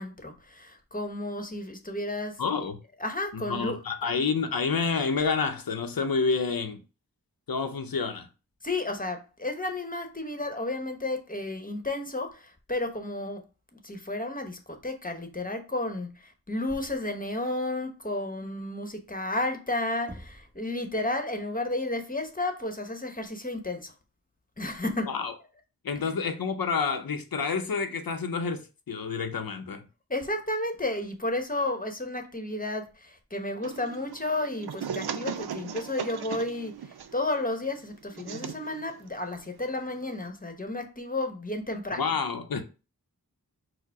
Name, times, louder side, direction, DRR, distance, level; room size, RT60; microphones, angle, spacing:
voice 1, 0.0-2.7 3.0-3.8 8.6-13.4 13.7-23.9 24.6-25.1 26.0-26.1 30.1-42.2, left 2 dB, 20° left, 1.0 m, -32 dB
voice 2, 2.4-2.8 3.3-6.8 7.5-8.3 25.1-25.3 25.8-29.8 42.0-42.6, left 5 dB, 70° left, 0.7 m, -29 dB
Knock, 20.1-20.7, equal, 5° right, 1.0 m, -45 dB
sound 1, 33.6-40.3, right 8 dB, 90° right, 0.5 m, -39 dB
4.7 x 2.1 x 4.6 m
cardioid pair, 40°, 37 cm